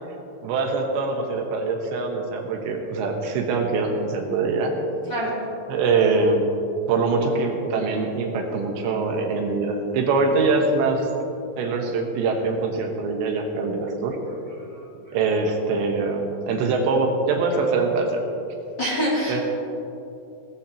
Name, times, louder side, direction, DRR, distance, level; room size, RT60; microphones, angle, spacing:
voice 1, 0.4-4.7 5.7-6.5 6.9-11.1 11.6-14.2 15.1-18.2 19.3-19.4, right 3 dB, 75° right, 2 dB, 3.3 m, -23 dB
voice 2, 5.1-5.4 14.3-14.4 14.7-15.2 18.8-19.4, equal, 30° left, -7 dB, 2.5 m, -27 dB
18.0 x 14.5 x 2.9 m, 2.8 s
omnidirectional pair, 5.3 m